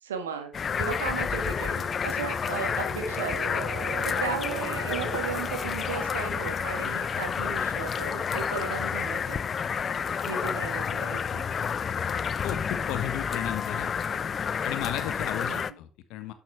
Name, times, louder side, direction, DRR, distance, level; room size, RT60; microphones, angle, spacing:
voice 1, 0.0-3.6 4.0-9.4 10.3-11.4 15.5-15.8, right 6 dB, 80° right, 7 dB, 1.4 m, -36 dB
sound 1, 0.5-15.7, left 7 dB, 40° left, 0.5 m, -30 dB
Wind instrument woodwind instrument, 1.2-5.5, equal, 20° left, 1.6 m, -46 dB
Mallet percussion, 2.8-8.4 8.7-8.8, right 10 dB, 60° right, 2.1 m, -41 dB
voice 2, 12.4-13.9 14.6-16.3, left 12 dB, 65° left, 10 dB, 1.0 m, -34 dB
11.5 x 7.0 x 3.4 m, 0.31 s
figure-of-eight pair, 50°, 0 cm